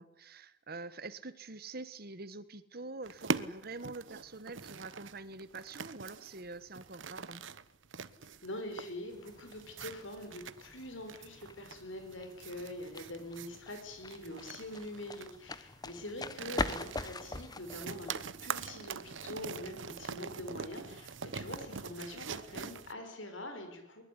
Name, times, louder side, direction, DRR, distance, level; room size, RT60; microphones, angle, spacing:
voice 1, 0.0-7.4, right 3 dB, 50° right, 14 dB, 1.5 m, -45 dB
sound 1, 3.1-22.9, right 5 dB, 75° right, 1.0 m, -43 dB
voice 2, 8.4-24.0, left 1 dB, 85° left, 6 dB, 6.3 m, -44 dB
sound 2, 9.1-18.3, left 2 dB, 20° left, 1.0 m, -43 dB
23.5 x 21.0 x 9.9 m, 0.85 s
head